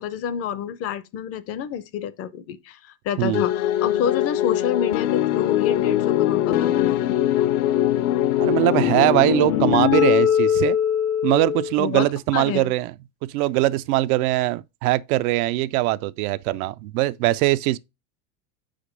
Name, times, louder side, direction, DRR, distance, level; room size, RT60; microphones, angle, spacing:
voice 1, 0.0-7.2 11.8-12.7, left 9 dB, 35° left, 0.5 m, -29 dB
sound 1, 3.3-11.8, left 11 dB, 80° left, 0.8 m, -21 dB
voice 2, 8.4-10.8 11.2-12.9 13.2-17.8, right 17 dB, 70° right, 0.5 m, -21 dB
5.1 x 5.1 x 5.0 m
supercardioid pair, 140°, 44 cm